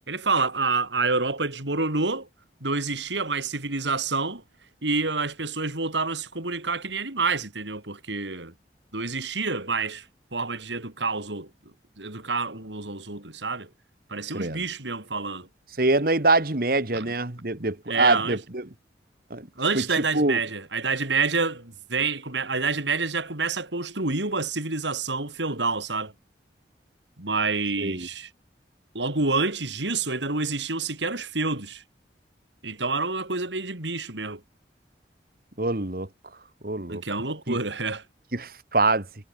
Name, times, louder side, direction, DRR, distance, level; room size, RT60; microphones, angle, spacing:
voice 1, 0.1-2.3 2.6-4.4 4.8-8.5 8.9-10.1 10.3-11.5 12.0-13.7 14.1-15.5 16.9-17.1 17.9-18.4 19.6-26.1 27.2-28.3 28.9-31.8 32.6-34.4 36.9-38.0, right 3 dB, 85° right, 4.3 m, -28 dB
voice 2, 15.8-18.6 19.3-19.5 19.7-20.4 27.8-28.1 35.6-36.1 36.6-37.0 37.5-37.6 38.3-39.1, right 2 dB, 55° right, 1.9 m, -24 dB
head